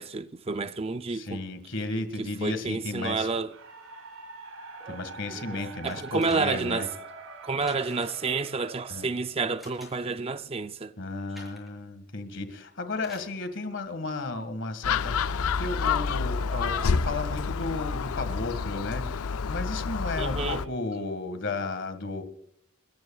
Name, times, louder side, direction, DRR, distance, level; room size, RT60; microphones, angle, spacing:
voice 1, 0.0-1.4 2.2-3.5 4.8-5.0 5.3-6.9 7.4-10.9 15.8-15.9 16.5-16.9 20.2-20.6, right 4 dB, 25° right, 0.5 m, -30 dB
voice 2, 1.1-3.3 4.9-6.9 8.9-9.1 11.0-22.2, left 3 dB, 60° left, 1.9 m, -34 dB
sound 1, 3.4-9.6, right 4 dB, 70° right, 5.5 m, -45 dB
sound 2, 5.9-6.8 7.6-8.3 9.6-10.2 11.3-11.8 13.0-13.4 14.4-14.5, left 1 dB, ahead, 6.8 m, -48 dB
Gull seagull, 14.8-20.7, left 5 dB, 85° left, 0.5 m, -28 dB
30.0 x 14.5 x 2.4 m
head